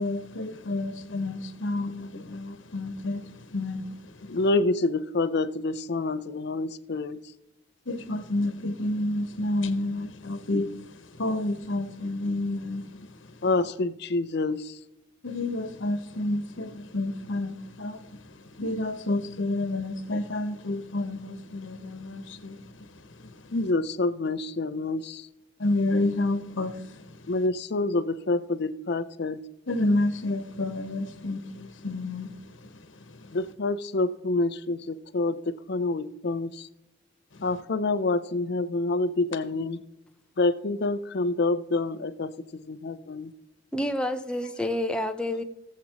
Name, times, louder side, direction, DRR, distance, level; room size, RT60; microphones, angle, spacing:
voice 1, 0.0-4.3 7.9-13.4 15.2-23.6 25.6-27.2 29.7-33.4 37.4-37.5, left 2 dB, 80° left, 1.2 m, -30 dB
voice 2, 4.3-7.2 13.4-14.7 23.5-25.3 27.3-29.4 33.3-36.7 37.4-39.8 40.4-42.3 42.7-43.3, left 2 dB, 60° left, 0.6 m, -27 dB
voice 3, 43.7-45.4, left 1 dB, 5° left, 0.7 m, -28 dB
18.5 x 7.5 x 3.0 m
head